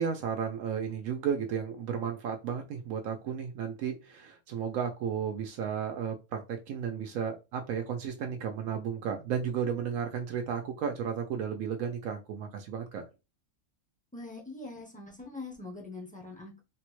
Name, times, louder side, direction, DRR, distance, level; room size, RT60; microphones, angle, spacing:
voice 1, 0.0-13.0, right 7 dB, 80° right, 3 dB, 1.0 m, -33 dB
voice 2, 14.1-16.6, left 3 dB, 10° left, -2 dB, 0.4 m, -43 dB
3.6 x 2.1 x 3.0 m, 0.26 s
omnidirectional pair, 1.5 m